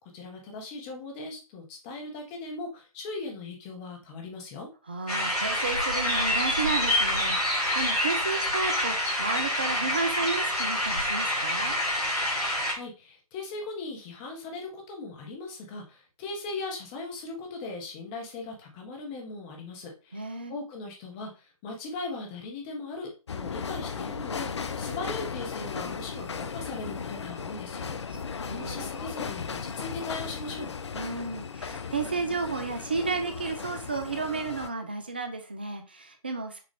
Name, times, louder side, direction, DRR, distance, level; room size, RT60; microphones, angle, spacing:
voice 1, 0.1-4.7 12.7-28.0 28.5-30.7, left 3 dB, 15° left, 2 dB, 0.8 m, -39 dB
voice 2, 4.9-11.8 20.1-20.5 28.1-28.8 30.9-36.6, right 4 dB, 15° right, 6 dB, 0.3 m, -32 dB
sound 1, 5.1-12.7, left 1 dB, 85° left, 2.7 m, -27 dB
sound 2, 23.3-34.7, left 6 dB, 50° left, 0.5 m, -36 dB
6.5 x 2.4 x 3.4 m, 0.32 s
figure-of-eight pair, 145°, 19 cm